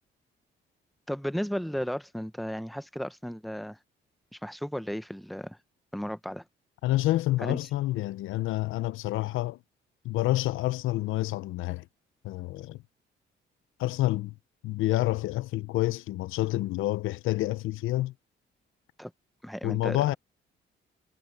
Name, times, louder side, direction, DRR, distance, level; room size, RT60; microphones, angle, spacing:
voice 1, 1.1-3.8 4.3-5.6 5.9-6.4 7.4-7.6 19.0-19.1 19.4-20.1, equal, ahead, 1.0 m, -34 dB
voice 2, 6.8-9.6 10.0-11.9 12.2-12.8 13.8-14.4 14.6-18.1 19.6-20.1, left 16 dB, 90° left, 0.7 m, -28 dB
cardioid pair, 90°, 20 cm